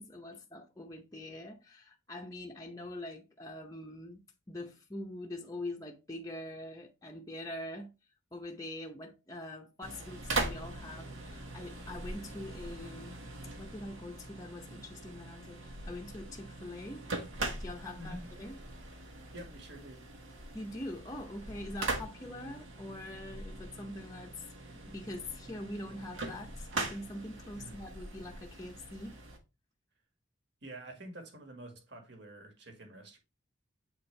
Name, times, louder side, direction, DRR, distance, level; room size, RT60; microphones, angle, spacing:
voice 1, 0.0-7.9 8.3-13.2 13.6-17.1 17.6-18.6 20.5-29.2, left 1 dB, 15° left, 0.6 m, -44 dB
sound 1, 9.8-29.4, right 2 dB, 85° right, 1.6 m, -41 dB
voice 2, 18.0-18.3 19.3-20.1 27.5-27.7 30.6-33.2, right 1 dB, 60° right, 1.7 m, -48 dB
7.9 x 4.4 x 3.2 m
head